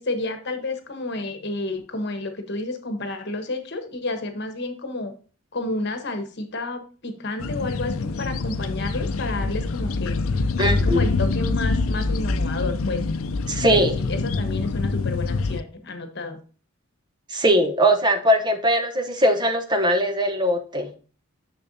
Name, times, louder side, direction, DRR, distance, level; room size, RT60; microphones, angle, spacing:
voice 1, 0.0-5.1 5.5-10.2 10.6-13.0 13.7-16.4, left 2 dB, 55° left, 7 dB, 1.2 m, -30 dB
sound 1, 7.4-15.6, left 3 dB, 90° left, 0.5 m, -25 dB
voice 2, 10.6-11.1 13.5-14.0 17.3-20.9, equal, 20° right, 7 dB, 0.9 m, -20 dB
6.8 x 6.6 x 2.7 m, 0.38 s
head